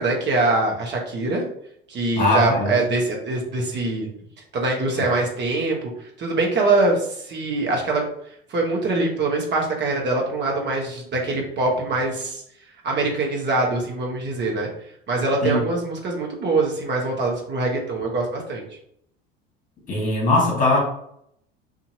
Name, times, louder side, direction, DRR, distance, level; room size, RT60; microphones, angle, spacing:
voice 1, 0.0-1.4 1.9-4.1 4.5-8.0 8.5-12.4 12.8-14.7 15.1-18.6, right 2 dB, 35° right, 0 dB, 1.0 m, -23 dB
voice 2, 2.2-2.8 15.4-15.6 19.9-20.8, left 2 dB, 25° left, -2 dB, 1.4 m, -20 dB
2.7 x 2.5 x 2.6 m, 0.71 s
hypercardioid pair, 70°, 30 cm